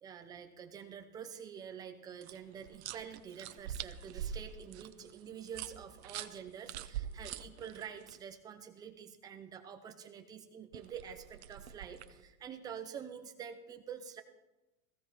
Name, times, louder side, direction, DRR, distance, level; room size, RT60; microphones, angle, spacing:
voice 1, 0.0-14.2, right 7 dB, 10° right, 7 dB, 0.6 m, -47 dB
sound 1, 2.2-8.2 10.7-12.2, right 10 dB, 50° right, 0.9 m, -44 dB
16.5 x 16.0 x 4.4 m, 1.0 s
supercardioid pair, 165°, 41 cm